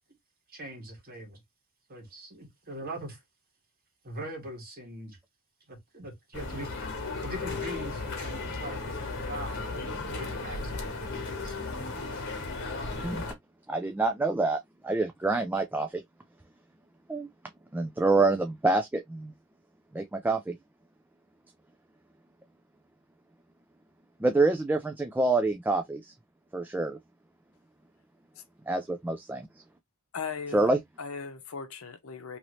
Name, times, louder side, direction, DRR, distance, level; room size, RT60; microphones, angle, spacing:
voice 1, 0.5-1.4 1.9-3.2 4.0-5.2 5.7-6.7 7.2-11.5, right 1 dB, 45° right, 1.5 m, -41 dB
sound 1, 6.3-13.3, left 3 dB, 55° left, 1.2 m, -35 dB
voice 2, 13.7-16.0 17.1-17.3 17.7-19.3 19.9-20.5 24.2-26.1 26.5-27.0 28.7-29.5 30.5-30.8, right 3 dB, 10° right, 0.3 m, -27 dB
voice 3, 30.1-30.7 31.0-32.4, left 5 dB, 80° left, 0.7 m, -38 dB
3.0 x 2.6 x 3.0 m
head